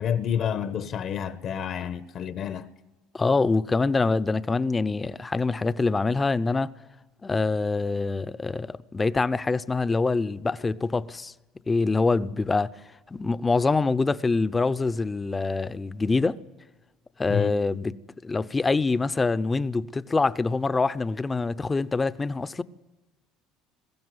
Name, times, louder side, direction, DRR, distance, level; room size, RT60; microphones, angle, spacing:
voice 1, 0.0-2.7 17.3-17.6, left 8 dB, 50° left, 1.1 m, -29 dB
voice 2, 3.1-6.7 7.2-11.3 11.7-12.8 13.1-16.4 17.2-18.0 18.2-22.6, left 3 dB, 20° left, 0.8 m, -25 dB
21.5 x 15.5 x 9.7 m
supercardioid pair, 105°, 0 cm